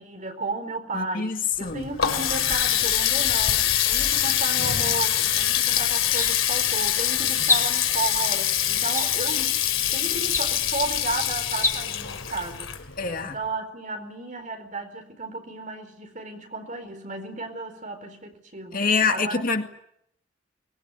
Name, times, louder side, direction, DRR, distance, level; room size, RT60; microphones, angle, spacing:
voice 1, 0.0-9.5 9.9-12.7 13.2-18.8 19.1-19.4, right 3 dB, 40° right, 4.4 m, -33 dB
voice 2, 0.9-1.9 13.0-13.3 18.7-19.7, left 4 dB, 45° left, 2.1 m, -25 dB
Water tap faucet, 1.6-13.2, left 10 dB, 80° left, 3.2 m, -24 dB
sound 1, 6.1-6.7 7.4-8.0 8.9-9.5 10.2-10.8 11.5-11.8, left 3 dB, 15° left, 1.9 m, -28 dB
23.5 x 21.5 x 9.8 m
head